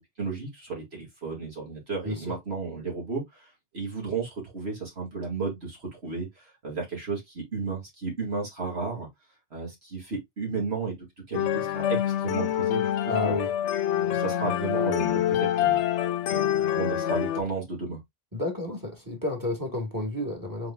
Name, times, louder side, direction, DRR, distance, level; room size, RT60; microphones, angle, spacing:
voice 1, 0.2-3.4 3.7-9.1 9.5-11.0 11.3-13.4 14.0-15.8 16.2-18.0, right 4 dB, 60° right, 2.4 m, -33 dB
voice 2, 2.0-2.3 13.1-13.5 18.3-20.7, left 2 dB, 15° right, 1.6 m, -31 dB
sound 1, 11.3-17.4, left 11 dB, 75° left, 0.9 m, -26 dB
4.9 x 4.2 x 2.3 m
omnidirectional pair, 1.2 m